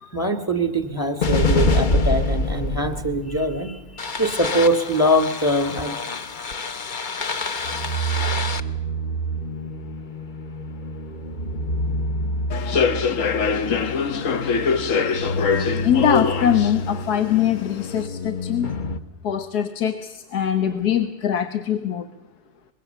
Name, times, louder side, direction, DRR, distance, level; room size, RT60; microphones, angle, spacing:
voice 1, 0.0-5.9, equal, 15° left, 7 dB, 1.9 m, -23 dB
sound 1, 1.2-19.0, left 1 dB, 35° left, 0.9 m, -27 dB
Human voice / Subway metro underground, 12.5-18.1, left 5 dB, 60° left, 1.3 m, -24 dB
voice 2, 15.8-18.7 19.2-22.1, left 9 dB, 85° left, 9 dB, 1.6 m, -22 dB
24.0 x 21.5 x 6.8 m, 1.0 s
omnidirectional pair, 1.6 m